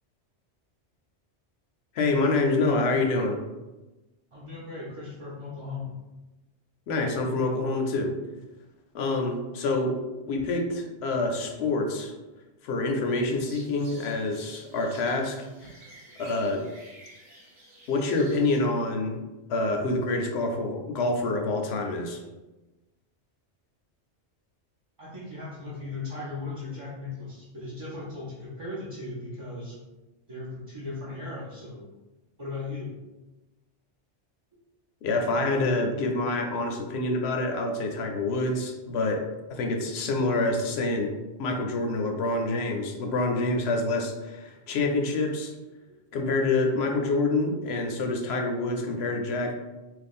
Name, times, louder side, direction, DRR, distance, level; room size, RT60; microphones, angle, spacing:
voice 1, 1.9-3.4 6.9-8.1 8.9-10.0 10.3-12.1 12.6-15.7 16.2-16.7 17.9-19.2 19.5-22.2 35.0-41.1 41.4-45.5 46.1-49.5, left 2 dB, 70° left, 3 dB, 0.8 m, -27 dB
voice 2, 4.3-5.9 25.0-29.8 30.3-31.9 32.4-32.9 45.9-46.0, left 3 dB, 35° right, -8 dB, 0.6 m, -37 dB
sound 1, 13.3-18.6, right 1 dB, 85° right, 1.2 m, -51 dB
3.0 x 2.6 x 4.1 m, 1.1 s
omnidirectional pair, 1.2 m